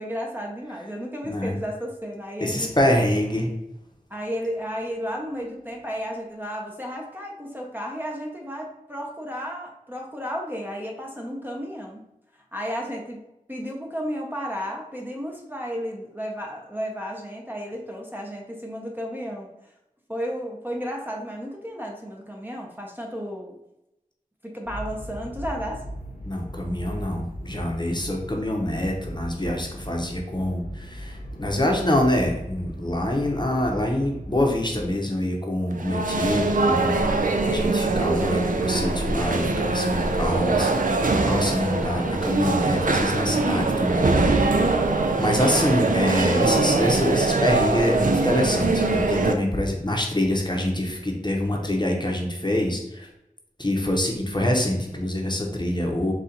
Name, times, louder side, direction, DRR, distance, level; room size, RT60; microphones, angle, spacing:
voice 1, 0.0-2.7 4.1-12.0 12.3-13.2 13.5-19.5 20.1-23.6 24.4-25.8, equal, 15° right, 0 dB, 0.7 m, -33 dB
voice 2, 1.2-1.6 2.4-3.5 26.2-37.0 37.4-40.8 41.3-44.8 45.2-53.1 53.6-56.1, left 1 dB, 30° left, 1 dB, 0.8 m, -25 dB
sound 1, 24.6-34.9, equal, 80° left, 0.7 m, -38 dB
sound 2, 35.7-49.3, right 3 dB, 70° right, 0.4 m, -22 dB
4.3 x 2.4 x 3.8 m, 0.87 s
wide cardioid pair, 40°, 14 cm